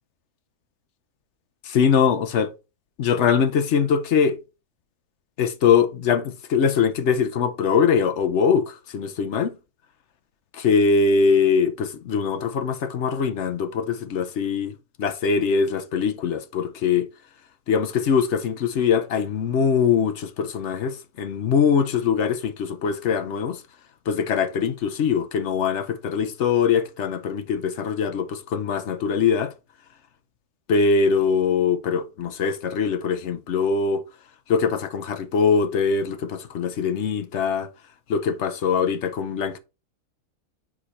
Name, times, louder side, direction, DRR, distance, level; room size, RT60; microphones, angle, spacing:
voice 1, 1.6-2.5 3.0-4.4 5.4-9.6 10.5-14.7 15.0-17.1 17.7-23.6 24.1-29.5 30.7-34.0 34.5-37.7 38.1-39.6, left 6 dB, 60° left, 0.8 m, -22 dB
5.0 x 4.9 x 4.1 m
omnidirectional pair, 1.6 m